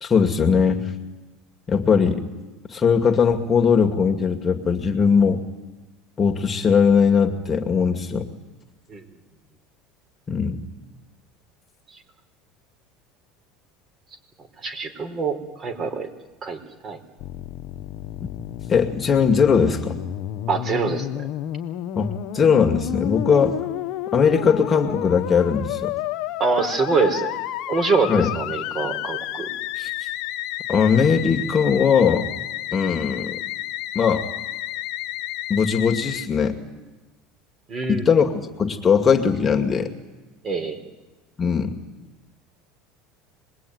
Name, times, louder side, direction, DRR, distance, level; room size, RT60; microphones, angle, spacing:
voice 1, 0.0-0.8 1.7-2.2 2.7-5.4 6.2-8.3 10.3-10.6 18.7-20.0 22.0-23.6 24.1-25.9 28.1-28.3 29.8-29.9 30.7-32.3 32.7-33.4 33.9-34.2 35.5-36.6 37.9-39.9 41.4-41.7, left 6 dB, 25° left, 2 dB, 2.2 m, -19 dB
voice 2, 14.6-16.1 16.4-17.0 20.5-21.1 26.4-27.3 27.7-29.5 37.7-38.0 40.4-40.9, right 4 dB, 35° right, 6 dB, 4.5 m, -24 dB
Musical instrument, 17.2-36.3, left 13 dB, 60° left, 1.2 m, -31 dB
26.0 x 21.0 x 9.5 m, 1.2 s
supercardioid pair, 110°, 0 cm